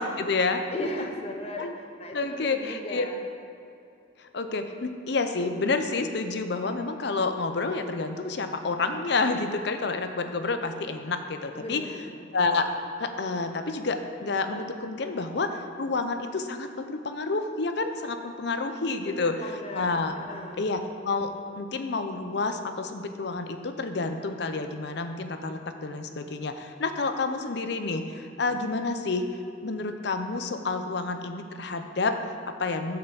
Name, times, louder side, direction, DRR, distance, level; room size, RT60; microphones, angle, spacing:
voice 1, 0.0-0.6 1.6-1.7 2.1-3.1 4.2-11.8 12.3-12.7 13.0-20.1 20.6-29.3 29.6-33.0, left 3 dB, 60° left, 7 dB, 0.6 m, -29 dB
voice 2, 0.7-1.7 2.0-3.2 11.5-12.2 19.0-19.9 20.2-20.7, left 1 dB, 35° left, 2 dB, 0.9 m, -36 dB
7.4 x 5.6 x 6.9 m, 2.6 s
head